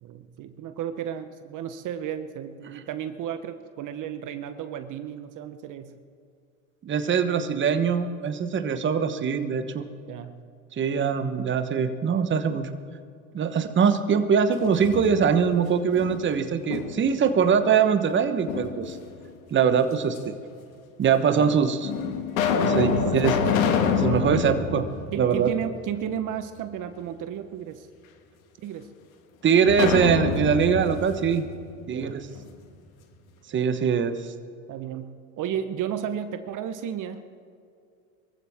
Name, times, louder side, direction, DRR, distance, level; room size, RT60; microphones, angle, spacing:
voice 1, 0.0-5.9 10.1-10.4 21.4-21.5 22.8-23.5 24.3-24.4 25.1-27.9 28.6-28.9 31.9-32.2 34.7-37.2, right 9 dB, 50° right, 10 dB, 1.1 m, -33 dB
voice 2, 6.8-9.8 10.7-12.7 13.3-19.0 19.5-20.3 21.0-21.9 22.6-23.3 24.0-24.8 25.2-25.5 29.4-31.4 31.9-32.3 33.5-34.3, right 6 dB, 30° right, 9 dB, 1.1 m, -22 dB
sound 1, 14.5-15.5 15.9-17.2 18.5-19.3 20.1-20.2 21.1-21.2 21.8-25.9 26.2-26.3 29.7-32.5, left 5 dB, 85° left, 1.8 m, -27 dB
23.5 x 15.0 x 3.6 m, 2.3 s
hypercardioid pair, 90°, 40 cm